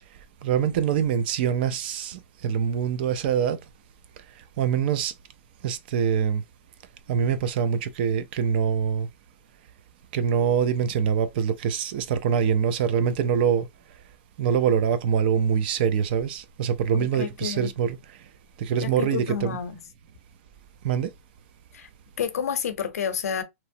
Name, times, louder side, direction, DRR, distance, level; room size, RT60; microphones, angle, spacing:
voice 1, 0.4-3.6 4.6-5.1 5.6-6.4 7.1-9.1 10.1-13.7 14.4-18.0 18.6-19.6 20.8-21.1, right 7 dB, 45° right, 0.3 m, -24 dB
voice 2, 17.2-17.7 18.8-19.8 21.7-21.9 22.2-23.4, left 7 dB, 90° left, 0.7 m, -29 dB
3.0 x 2.0 x 2.6 m
hypercardioid pair, 160°, 8 cm